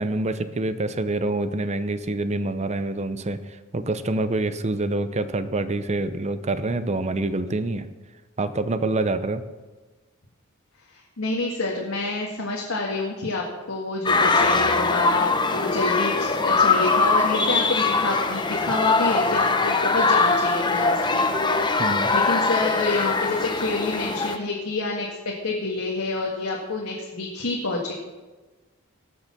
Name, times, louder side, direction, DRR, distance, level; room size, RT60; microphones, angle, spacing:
voice 1, 0.0-3.4 3.7-7.9 8.4-9.4 21.8-22.1, right 2 dB, 30° right, 12 dB, 0.7 m, -26 dB
voice 2, 10.9-21.8 22.1-27.9, left 2 dB, 85° left, -2 dB, 1.9 m, -28 dB
sound 1, 14.1-24.4, left 3 dB, 20° left, 0.8 m, -22 dB
18.5 x 7.0 x 6.0 m, 1.2 s
head